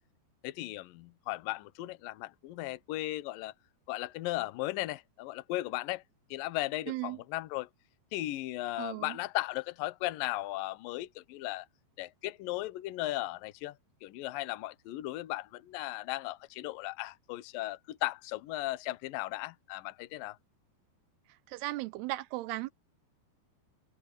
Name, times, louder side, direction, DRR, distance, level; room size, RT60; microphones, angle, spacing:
voice 1, 0.4-3.5 3.9-6.0 6.3-7.7 8.1-11.7 12.0-13.8 14.0-20.4, left 17 dB, 75° left, 2.3 m, -36 dB
voice 2, 6.9-7.2 8.8-9.2 21.5-22.7, right 18 dB, 80° right, 2.6 m, -36 dB
omnidirectional pair, 4.8 m